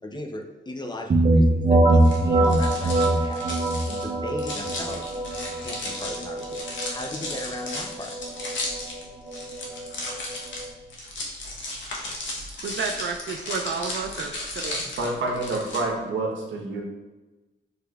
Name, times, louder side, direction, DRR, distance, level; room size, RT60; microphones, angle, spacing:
voice 1, 0.0-5.2 5.5-8.1, left 1 dB, 20° left, 3 dB, 0.6 m, -38 dB
sound 1, 1.1-10.7, right 2 dB, 45° right, 0.7 m, -23 dB
sound 2, 2.0-15.8, left 2 dB, 75° left, 1.0 m, -35 dB
voice 2, 12.6-14.8, right 5 dB, 70° right, 3 dB, 0.4 m, -31 dB
voice 3, 15.0-16.8, right 2 dB, 85° right, 0 dB, 1.0 m, -28 dB
6.9 x 3.2 x 2.3 m, 1.2 s
cardioid pair, 80°, 19 cm